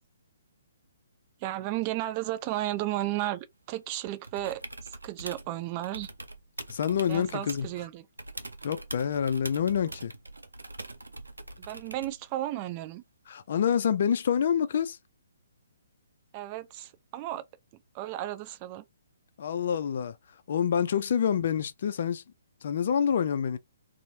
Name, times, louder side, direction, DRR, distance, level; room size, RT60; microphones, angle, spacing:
voice 1, 1.4-4.6 5.0-6.1 7.1-8.0 11.6-13.0 16.3-17.4 17.9-18.8, right 14 dB, 30° right, 0.4 m, -33 dB
sound 1, 4.2-5.5 5.8-7.8 8.2-12.2 14.1-14.2, right 2 dB, 85° right, 0.5 m, -43 dB
voice 2, 6.7-7.7 8.6-10.1 13.3-15.0 19.4-20.2 20.5-22.2 22.6-23.6, left 8 dB, 55° left, 0.3 m, -27 dB
3.0 x 2.0 x 2.7 m
figure-of-eight pair, 135°, 0 cm